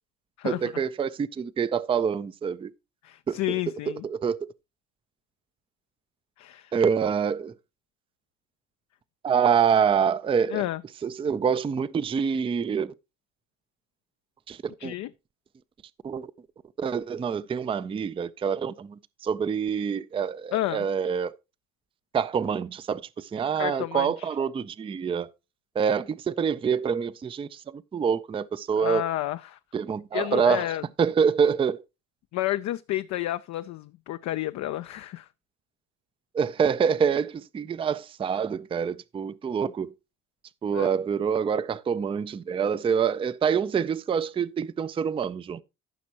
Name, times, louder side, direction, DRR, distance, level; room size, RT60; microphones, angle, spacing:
voice 1, 0.4-2.7 3.3-3.4 4.0-4.4 6.7-7.5 9.2-10.6 11.0-12.9 14.5-14.9 16.0-16.3 16.8-21.3 22.1-25.3 25.8-29.0 29.7-30.6 31.0-31.8 36.3-39.9 40.6-45.6, right 7 dB, 15° right, 0.4 m, -26 dB
voice 2, 3.0-4.0 6.4-6.7 10.5-10.8 14.8-15.1 20.5-20.9 23.6-24.3 28.8-29.6 30.1-30.8 32.3-35.3 40.7-40.9, left 15 dB, 45° left, 0.4 m, -30 dB
14.0 x 5.9 x 2.9 m
hypercardioid pair, 65°, 40 cm